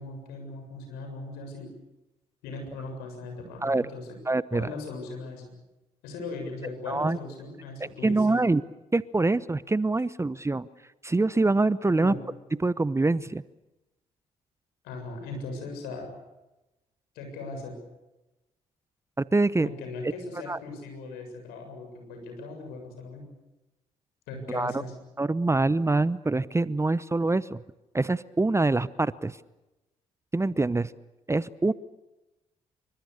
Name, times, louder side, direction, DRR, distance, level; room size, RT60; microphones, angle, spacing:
voice 1, 0.0-1.7 2.4-4.2 4.5-5.5 6.0-8.5 11.9-12.2 14.8-16.1 17.1-17.8 19.6-23.3 24.3-24.9, left 3 dB, 75° left, 4 dB, 7.4 m, -39 dB
voice 2, 4.3-4.7 6.9-7.2 7.8-8.6 8.9-10.7 11.0-12.1 12.6-13.4 19.3-19.7 20.5-20.6 24.5-24.7 25.2-27.6 27.9-29.4 30.3-30.9 31.3-31.7, right 2 dB, 15° right, 19 dB, 0.9 m, -25 dB
27.0 x 25.0 x 6.8 m, 0.99 s
hypercardioid pair, 45°, 16 cm